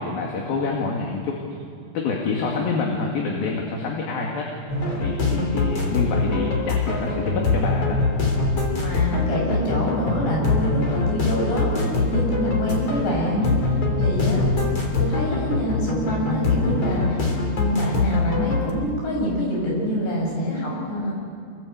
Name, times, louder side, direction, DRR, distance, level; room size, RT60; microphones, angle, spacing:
voice 1, 0.0-1.4 1.9-4.5 5.0-8.0, left 4 dB, 65° left, -1 dB, 4.0 m, -27 dB
sound 1, 4.7-18.7, left 3 dB, 40° left, 4.1 m, -23 dB
voice 2, 8.8-14.5 15.0-21.1, equal, 90° left, -2 dB, 9.6 m, -26 dB
26.5 x 22.0 x 8.3 m, 2.4 s
omnidirectional pair, 4.8 m